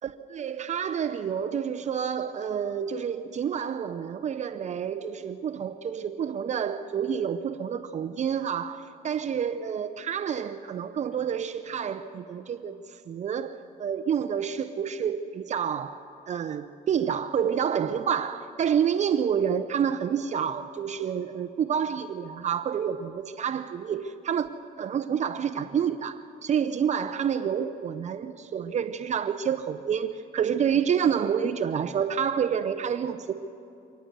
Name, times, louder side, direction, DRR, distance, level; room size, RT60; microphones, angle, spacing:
voice 1, 0.0-16.0 16.3-24.5 24.8-33.3, right 8 dB, 45° right, 0.8 m, -28 dB
24.5 x 18.5 x 6.8 m
cardioid pair, 110°, 17 cm